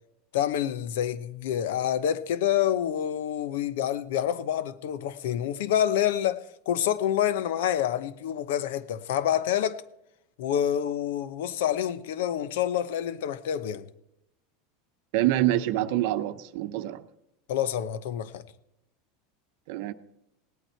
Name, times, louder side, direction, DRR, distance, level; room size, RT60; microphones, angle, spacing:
voice 1, 0.3-9.8 10.4-13.9 17.5-18.4, left 10 dB, 75° left, 0.9 m, -27 dB
voice 2, 15.1-17.0 19.7-19.9, right 14 dB, 65° right, 0.8 m, -26 dB
18.5 x 9.1 x 4.5 m
supercardioid pair, 125°, 0 cm